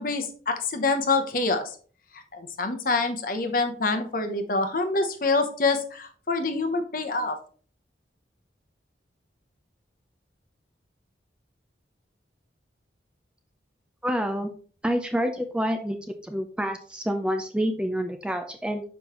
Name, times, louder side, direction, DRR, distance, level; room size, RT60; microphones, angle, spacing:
voice 1, 0.0-1.7 2.3-7.4, left 3 dB, 50° left, 7 dB, 0.8 m, -26 dB
voice 2, 14.0-14.5 14.8-16.0 16.2-18.8, equal, 5° right, 6 dB, 0.4 m, -27 dB
6.6 x 5.3 x 3.0 m, 0.43 s
head